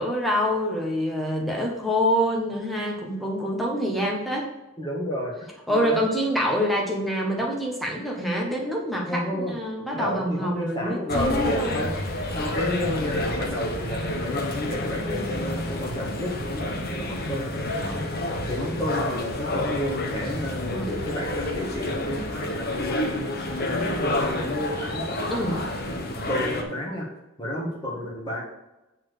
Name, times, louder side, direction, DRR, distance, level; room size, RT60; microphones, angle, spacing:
voice 1, 0.0-4.5 5.7-11.8 20.7-20.8 25.3-25.6, equal, ahead, -3 dB, 1.5 m, -26 dB
voice 2, 4.8-5.3 5.7-6.0 9.1-9.5 9.9-11.9 12.3-17.5 17.7-18.0 18.5-22.9 23.5-25.6 25.9-27.1 27.4-28.4, left 1 dB, 20° left, -3 dB, 1.8 m, -31 dB
sound 1, 11.1-26.6, left 1 dB, 45° left, 1.2 m, -29 dB
8.6 x 4.5 x 6.7 m, 0.98 s
head